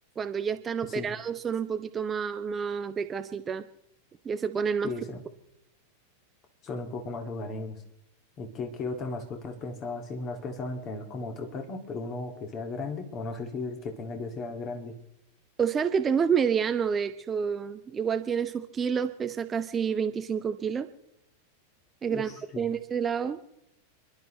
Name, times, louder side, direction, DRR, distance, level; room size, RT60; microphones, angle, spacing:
voice 1, 0.2-3.7 4.2-4.9 15.6-20.9 22.0-22.3 22.6-23.4, right 7 dB, 20° right, 10 dB, 0.6 m, -29 dB
voice 2, 4.8-5.2 6.6-7.8 8.4-14.9 22.1-22.7, left 3 dB, 30° left, 4 dB, 2.1 m, -36 dB
30.0 x 11.5 x 3.1 m, 0.80 s
figure-of-eight pair, 90°, 0 cm